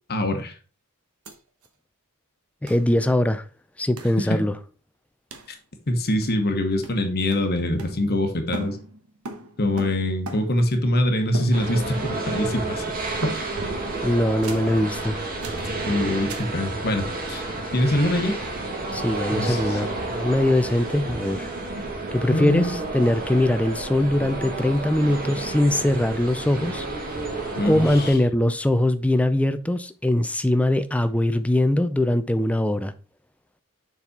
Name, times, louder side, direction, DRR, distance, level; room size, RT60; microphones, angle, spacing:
voice 1, 0.1-0.5 4.2-4.4 5.9-8.8 9.6-12.8 15.9-17.4 17.7-18.4 19.3-19.8 22.3-22.8 27.6-28.2, left 1 dB, 45° left, 1.1 m, -24 dB
sound 1, 1.2-1.3 1.6-1.7 2.7-2.9 4.0-4.2 5.3-5.5 6.2-6.5 6.8-8.3 8.5-10.7 11.3-12.0 12.3-12.7 13.2-13.7 14.4-14.7 15.4-15.7 16.3-16.6, right 2 dB, 80° right, 1.1 m, -38 dB
voice 2, 2.6-3.4 3.8-4.5 14.0-15.2 18.9-21.5 22.1-26.9 27.6-32.9, left 1 dB, 5° left, 0.4 m, -22 dB
sound 2, 11.5-28.1, right 2 dB, 40° right, 1.8 m, -30 dB
7.0 x 4.1 x 4.2 m
head